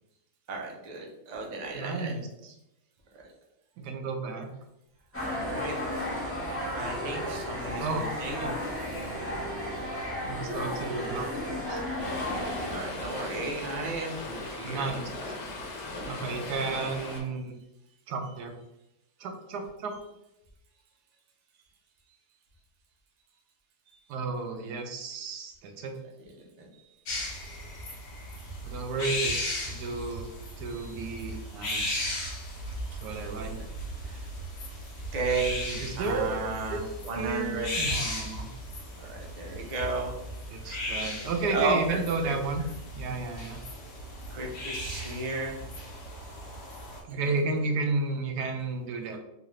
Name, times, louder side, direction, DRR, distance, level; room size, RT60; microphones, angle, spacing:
voice 1, 0.5-2.1 5.3-5.7 6.7-8.5 12.7-14.9 30.7-30.8 33.4-33.6 34.1-34.2 35.1-35.6 36.0-37.7 39.0-40.2 41.5-42.3 44.3-45.6, right 3 dB, 60° right, -1 dB, 0.4 m, -33 dB
voice 2, 1.7-2.5 3.8-4.5 7.8-8.1 8.4-8.6 10.3-11.8 14.6-15.1 16.1-17.5 18.1-18.5 19.2-20.0 24.1-25.9 28.6-30.3 30.6-32.2 33.0-33.6 35.7-36.4 36.7-36.8 37.1-38.5 40.5-42.6 42.9-43.6 47.1-49.2, right 3 dB, 80° right, 4 dB, 1.1 m, -32 dB
sound 1, 5.1-12.8, left 1 dB, 10° left, 0.6 m, -33 dB
Stream, 12.0-17.2, left 2 dB, 85° left, 1.4 m, -38 dB
sound 2, 27.1-47.0, left 1 dB, 65° left, 1.3 m, -36 dB
3.7 x 2.4 x 3.0 m, 0.88 s
omnidirectional pair, 1.7 m